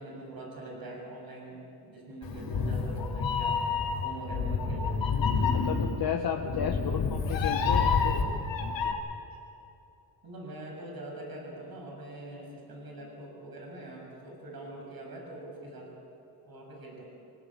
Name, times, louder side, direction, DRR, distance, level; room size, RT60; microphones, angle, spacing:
voice 1, 0.0-3.6 4.0-5.1 6.7-7.0 10.2-15.9 16.5-17.0, right 1 dB, 55° right, -1 dB, 7.3 m, -43 dB
Meow, 2.2-8.9, left 5 dB, 90° left, 3.5 m, -28 dB
voice 2, 5.5-9.0, left 7 dB, 55° left, 1 dB, 1.6 m, -34 dB
26.0 x 18.0 x 9.0 m, 2.9 s
cardioid pair, 115°, 44 cm